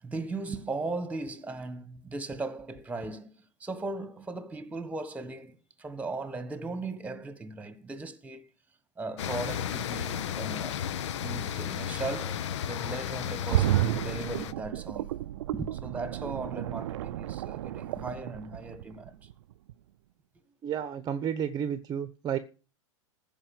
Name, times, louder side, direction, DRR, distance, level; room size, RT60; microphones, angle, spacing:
voice 1, 0.0-3.3 3.6-8.5 9.0-10.8 11.2-15.1 15.5-19.3, right 3 dB, 10° right, 1.5 m, -37 dB
sound 1, 9.2-14.5, left 9 dB, 65° left, 0.8 m, -34 dB
sound 2, 13.5-19.3 19.7-19.8, right 14 dB, 65° right, 0.6 m, -31 dB
voice 2, 20.6-22.4, right 8 dB, 25° right, 1.0 m, -31 dB
14.5 x 5.5 x 8.6 m
hypercardioid pair, 110°, 16 cm